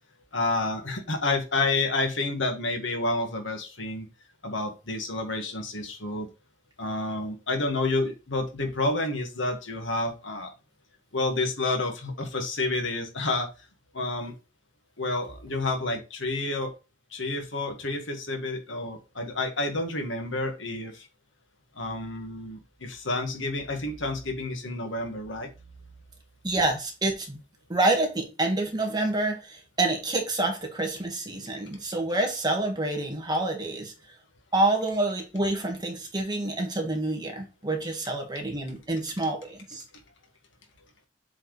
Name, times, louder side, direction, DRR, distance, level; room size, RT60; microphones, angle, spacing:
voice 1, 0.3-4.1 4.4-6.3 6.8-10.5 11.1-13.5 13.9-14.3 15.0-16.7 17.1-21.1 21.8-25.5, left 2 dB, 85° left, 4 dB, 1.7 m, -29 dB
voice 2, 26.4-27.4 27.7-33.9 34.5-39.8, right 2 dB, 20° right, 2 dB, 1.7 m, -27 dB
7.8 x 4.5 x 3.2 m, 0.29 s
head